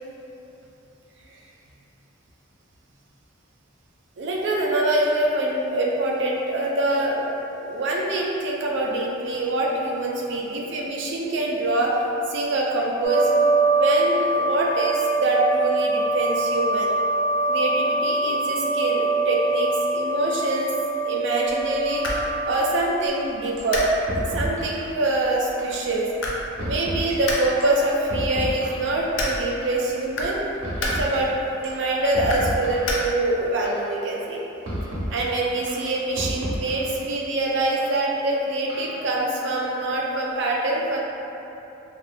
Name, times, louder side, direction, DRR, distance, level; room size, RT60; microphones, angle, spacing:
voice 1, 4.2-12.0 12.3-13.3 13.7-16.9 17.5-20.7 21.0-22.1 22.5-23.9 24.1-26.1 26.6-30.4 30.8-34.4 35.1-41.0, right 2 dB, 60° right, -2 dB, 0.4 m, -25 dB
sound 1, 13.0-22.4, right 2 dB, 45° left, 1.1 m, -23 dB
sound 2, 21.5-33.5, left 1 dB, 60° left, 0.4 m, -33 dB
sound 3, 23.1-23.2 23.6-23.8 24.1-24.8 25.6-25.8 26.6-27.1 27.6-29.0 29.6-29.8 30.6-31.2 31.6-31.8 32.1-33.0 33.6-33.9 34.6-35.2 35.7-37.0 37.7-37.8 38.7-39.1, equal, 90° right, 0.7 m, -31 dB
2.6 x 2.3 x 3.3 m, 2.9 s
head